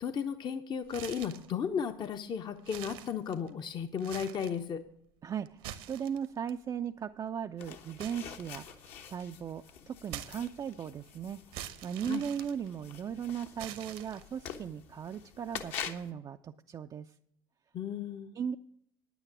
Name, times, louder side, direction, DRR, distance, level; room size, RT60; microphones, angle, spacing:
voice 1, 0.0-4.8 12.1-12.2 17.7-18.3, left 7 dB, 40° left, 8 dB, 0.7 m, -35 dB
sound 1, 0.9-1.5 2.0-2.1 2.6-3.6 4.0-4.6 5.5-6.5 8.0-9.0 10.1-10.9 11.5-13.1 13.6-14.5, right 11 dB, 65° right, 1.0 m, -45 dB
voice 2, 5.2-8.8 9.0-11.4 11.8-17.1 18.4-18.6, right 8 dB, 30° right, 6 dB, 0.4 m, -37 dB
sound 2, 7.6-16.1, left 8 dB, 60° left, 1.1 m, -46 dB
9.6 x 9.2 x 6.0 m, 0.73 s
hypercardioid pair, 65°, 12 cm